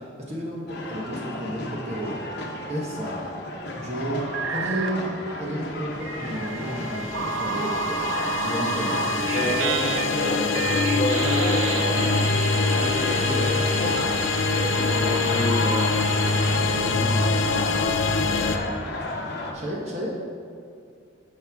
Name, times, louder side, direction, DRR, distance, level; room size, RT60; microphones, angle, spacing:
voice 1, 0.0-2.2 2.7-3.4 3.8-4.2 4.5-5.1 5.4-9.6 19.5-20.1, right 1 dB, 35° right, -3 dB, 1.1 m, -32 dB
sound 1, 0.7-19.5, left 1 dB, 55° left, 0.9 m, -34 dB
sound 2, 4.2-5.1 6.0-16.6, right 8 dB, 85° right, 0.3 m, -32 dB
sound 3, 6.3-18.6, left 4 dB, 85° left, 0.6 m, -24 dB
voice 2, 9.3-14.1 14.5-15.8 16.5-17.9 18.2-18.5, equal, 35° left, -4 dB, 2.2 m, -30 dB
10.5 x 6.6 x 3.6 m, 2.3 s
head